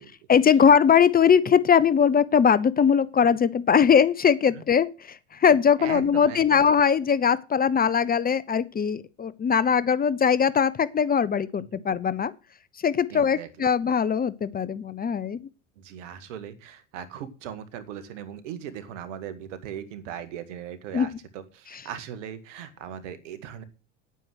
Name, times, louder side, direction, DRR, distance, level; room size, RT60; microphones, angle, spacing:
voice 1, 0.3-12.3 12.8-15.4 20.9-21.1, left 7 dB, 25° left, 0.8 m, -21 dB
voice 2, 5.8-6.6 11.6-11.8 13.1-13.7 15.8-23.6, right 9 dB, 70° right, 1.9 m, -39 dB
9.5 x 9.2 x 6.4 m
hypercardioid pair, 80°, 38 cm